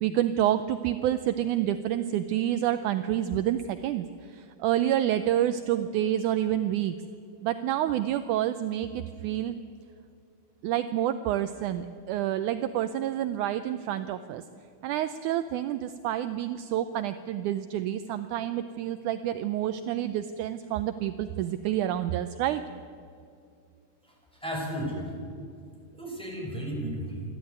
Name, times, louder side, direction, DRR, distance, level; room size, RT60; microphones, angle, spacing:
voice 1, 0.0-7.0 7.4-9.6 10.6-14.4 14.8-22.6, right 12 dB, 75° right, 10 dB, 2.0 m, -28 dB
voice 2, 24.4-25.1 25.9-27.2, equal, ahead, -2 dB, 5.9 m, -33 dB
28.0 x 12.0 x 9.5 m, 2.4 s
omnidirectional pair, 3.8 m